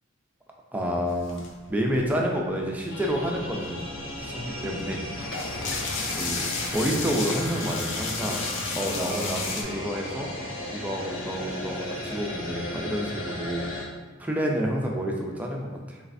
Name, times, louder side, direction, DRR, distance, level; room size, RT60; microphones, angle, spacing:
voice 1, 0.7-1.4 1.7-5.0 6.2-6.5 6.7-8.4 8.8-10.3 10.7-13.7 14.2-16.0, equal, 10° right, -1 dB, 0.4 m, -29 dB
sound 1, 1.1-2.4 3.0-3.1 3.3-9.6, left 4 dB, 65° left, 0.5 m, -32 dB
sound 2, 2.9-13.8, left 1 dB, 85° left, 0.8 m, -36 dB
4.0 x 3.2 x 2.5 m, 1.4 s
head